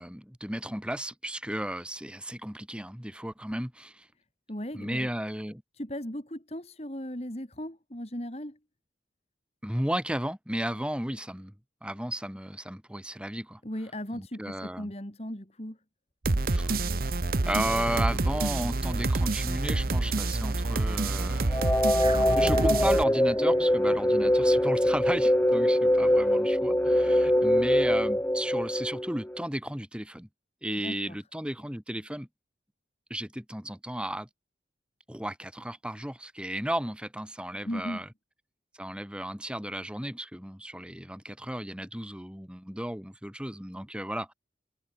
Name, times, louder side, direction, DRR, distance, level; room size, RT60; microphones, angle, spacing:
voice 1, 0.0-4.1 4.7-5.6 9.6-11.5 11.8-13.6 14.1-14.9 16.5-16.7 17.4-21.6 22.1-30.3 30.6-32.3 33.1-34.3 35.1-38.1 38.7-44.3, right 1 dB, 5° right, 2.0 m, -34 dB
voice 2, 4.5-5.1 5.8-8.6 13.6-15.8 30.8-31.2 37.6-38.0, equal, 35° left, 3.3 m, -37 dB
sound 1, 16.2-23.0, right 2 dB, 50° right, 0.9 m, -27 dB
sound 2, 21.5-29.5, equal, 10° left, 1.0 m, -23 dB
sound 3, 22.0-26.6, right 1 dB, 25° right, 2.1 m, -39 dB
head